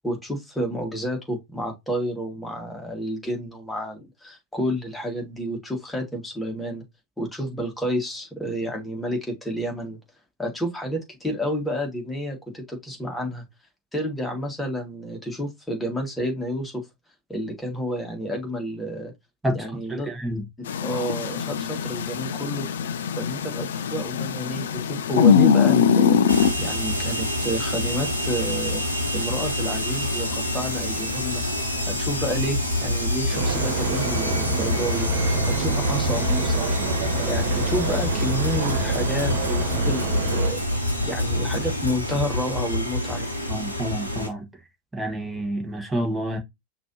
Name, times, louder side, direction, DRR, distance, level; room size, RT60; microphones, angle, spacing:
voice 1, 0.0-6.8 7.2-10.0 10.4-13.4 13.9-16.9 17.3-19.1 19.5-20.1 20.8-22.7 23.2-26.2 26.6-28.8 29.1-31.4 31.9-36.7 37.3-40.6 41.0-43.3, equal, 5° left, 1.8 m, -30 dB
voice 2, 19.4-20.5 43.5-44.5 44.9-46.4, right 1 dB, 10° right, 1.5 m, -29 dB
sound 1, 20.7-26.5, left 7 dB, 60° left, 0.4 m, -22 dB
sound 2, 26.3-44.3, left 1 dB, 90° right, 1.0 m, -26 dB
Stream / Boat Water vehicle, 33.3-40.5, right 5 dB, 45° right, 1.6 m, -28 dB
6.0 x 2.8 x 2.8 m
figure-of-eight pair, 90°, 0 cm